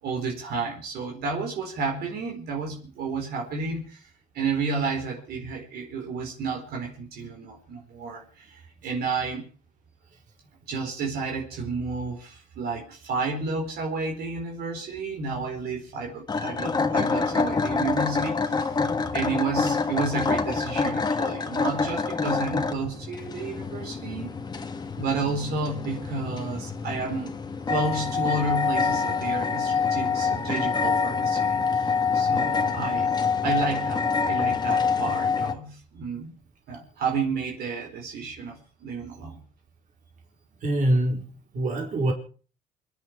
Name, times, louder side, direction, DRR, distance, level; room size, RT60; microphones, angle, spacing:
voice 1, 0.0-4.1 4.3-9.5 10.7-18.7 19.1-24.3 25.0-27.4 27.7-33.1 33.4-36.4 36.7-39.4, right 4 dB, 70° right, 4.4 m, -31 dB
sound 1, 16.3-35.5, left 5 dB, 25° left, 1.6 m, -26 dB
voice 2, 40.6-41.2 41.5-42.1, right 1 dB, 50° right, 4.8 m, -24 dB
28.0 x 10.5 x 4.8 m
cardioid pair, 110°, 17 cm